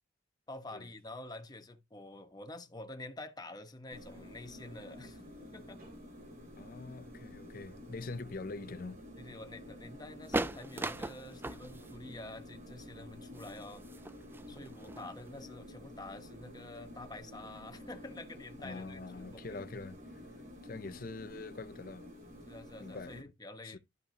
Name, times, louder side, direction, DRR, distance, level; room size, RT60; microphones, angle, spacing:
voice 1, 0.5-5.9 9.2-13.8 14.5-19.6 22.5-23.8, left 2 dB, 20° left, 1.1 m, -48 dB
sound 1, 3.9-23.2, left 1 dB, 50° right, 3.3 m, -50 dB
voice 2, 6.6-9.0 18.6-20.0 20.6-22.1 22.8-23.2 23.6-23.8, left 3 dB, 50° left, 0.6 m, -44 dB
sound 2, 10.2-15.4, right 2 dB, 10° right, 0.4 m, -39 dB
12.5 x 5.4 x 2.8 m
head